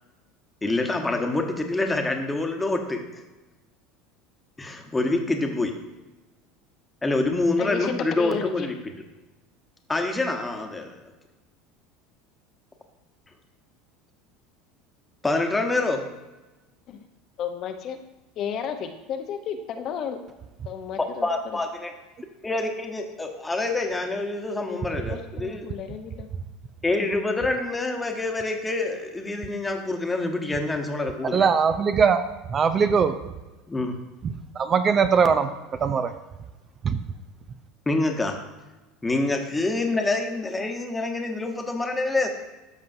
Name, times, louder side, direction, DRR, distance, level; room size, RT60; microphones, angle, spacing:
voice 1, 0.6-3.2 4.6-5.7 7.0-8.7 9.9-10.9 15.2-16.0 21.0-21.9 22.4-25.7 26.8-31.5 33.7-34.0 37.9-38.4 39.0-42.3, left 2 dB, 15° left, 4 dB, 1.1 m, -26 dB
voice 2, 7.6-8.7 16.9-17.0 17.4-18.0 18.4-20.2 20.6-21.3 24.7-26.3, left 7 dB, 50° left, 6 dB, 0.8 m, -33 dB
voice 3, 31.3-33.1 34.6-35.5 35.8-36.1 36.8-37.0, right 6 dB, 35° right, 10 dB, 0.5 m, -21 dB
13.5 x 5.4 x 2.7 m, 1.1 s
supercardioid pair, 115°, 0 cm